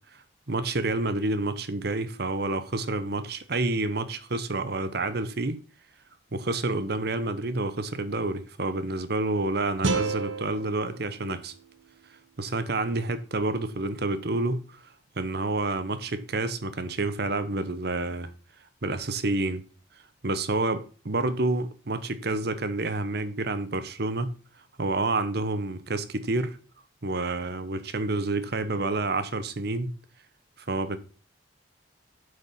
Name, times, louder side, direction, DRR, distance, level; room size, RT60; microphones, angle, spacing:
voice 1, 0.1-5.6 6.3-11.5 12.4-14.8 15.2-18.3 18.8-19.6 20.2-24.4 24.8-26.6 27.0-29.9 30.7-31.0, right 2 dB, 55° right, 1.0 m, -29 dB
sound 1, 9.8-12.9, right 3 dB, 75° right, 1.3 m, -33 dB
8.0 x 6.7 x 5.6 m
head